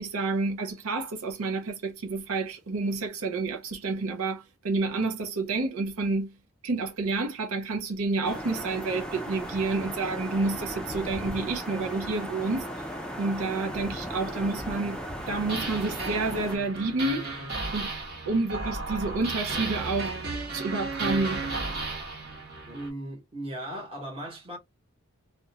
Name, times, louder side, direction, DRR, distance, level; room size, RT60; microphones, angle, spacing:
voice 1, 0.0-6.3 6.6-12.7 13.2-15.0 15.3-17.3 17.7-17.9 18.3-20.2 20.5-21.4, right 3 dB, 80° right, 0.6 m, -29 dB
sound 1, 8.2-16.6, equal, 5° left, 0.4 m, -36 dB
sound 2, 15.2-22.9, right 3 dB, 45° right, 1.0 m, -34 dB
voice 2, 22.7-24.6, right 1 dB, 25° right, 1.0 m, -37 dB
2.5 x 2.1 x 2.7 m
head